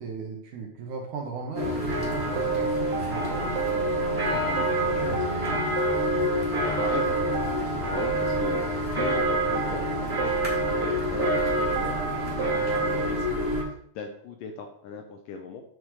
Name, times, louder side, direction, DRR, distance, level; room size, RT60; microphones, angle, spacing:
voice 1, 0.0-3.5 4.2-5.6, right 5 dB, 65° right, 1 dB, 2.2 m, -37 dB
sound 1, 1.5-13.6, left 1 dB, 5° right, 2.6 m, -28 dB
sound 2, 2.4-4.2 4.6-6.5 6.8-8.7 9.0-10.9 11.2-13.1, right 6 dB, 90° right, 2.6 m, -30 dB
voice 2, 4.4-5.2 6.6-13.5 14.0-15.6, left 5 dB, 75° left, 4 dB, 2.1 m, -38 dB
9.4 x 5.8 x 4.8 m, 0.66 s
omnidirectional pair, 4.5 m